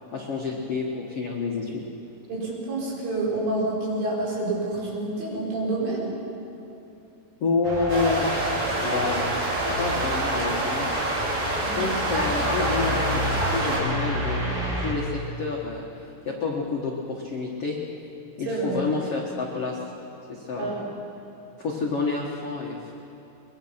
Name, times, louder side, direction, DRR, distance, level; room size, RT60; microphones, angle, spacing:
voice 1, 0.1-1.8 7.4-8.5 8.8-9.5 9.8-10.9 11.7-14.4 14.8-15.9 16.2-17.8 18.4-19.8 20.3-20.9 21.6-22.9, left 4 dB, 70° left, -2 dB, 1.4 m, -29 dB
voice 2, 2.3-6.1 11.6-11.8 18.5-18.8 20.6-20.9, right 2 dB, 90° right, -5 dB, 7.7 m, -28 dB
sound 1, 7.6-14.9, left 1 dB, 25° right, 3.2 m, -29 dB
sound 2, 7.9-13.8, right 2 dB, 70° right, 7.8 m, -27 dB
23.0 x 22.5 x 5.9 m, 3.0 s
omnidirectional pair, 5.4 m